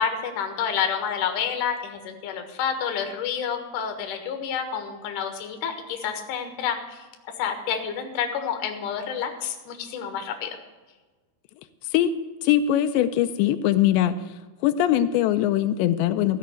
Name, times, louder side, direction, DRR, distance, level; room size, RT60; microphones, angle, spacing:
voice 1, 0.0-7.0 7.4-10.6, left 7 dB, 60° left, 5 dB, 2.7 m, -29 dB
voice 2, 12.4-14.2 14.6-16.4, left 11 dB, 90° left, 10 dB, 2.9 m, -21 dB
14.5 x 6.6 x 8.2 m, 1.3 s
omnidirectional pair, 4.9 m